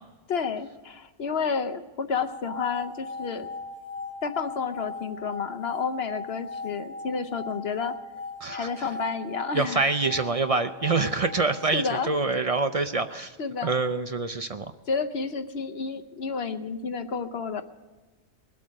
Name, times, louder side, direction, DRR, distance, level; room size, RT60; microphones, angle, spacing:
voice 1, 0.3-3.5 4.2-8.0 8.5-9.9 11.7-12.1 13.4-13.7 14.9-17.6, left 5 dB, 55° left, 9 dB, 1.0 m, -30 dB
sound 1, 2.1-12.3, left 3 dB, 60° right, 2.0 m, -39 dB
voice 2, 9.5-13.4 13.6-14.7, right 3 dB, 45° right, 9 dB, 0.4 m, -26 dB
21.0 x 8.4 x 6.4 m, 1.2 s
omnidirectional pair, 1.3 m